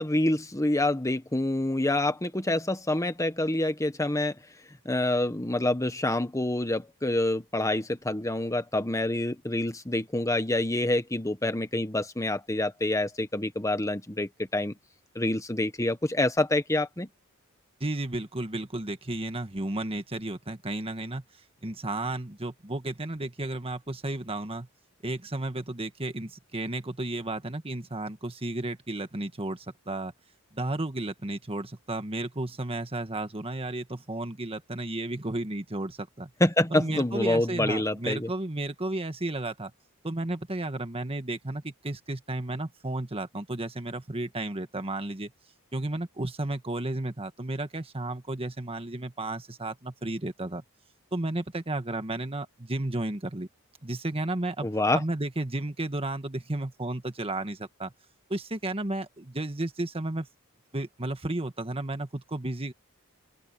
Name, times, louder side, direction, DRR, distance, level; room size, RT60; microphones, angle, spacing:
voice 1, 0.0-4.4 4.8-14.7 15.1-17.1 36.4-38.3 54.6-55.0, left 1 dB, 15° left, 1.5 m, -27 dB
voice 2, 17.8-21.2 21.6-24.7 25.0-30.1 30.5-36.3 36.7-39.7 40.0-45.3 45.7-50.6 51.1-53.5 53.8-54.7 54.9-57.9 58.3-60.3 60.7-62.7, right 2 dB, 25° right, 1.6 m, -33 dB
open air
head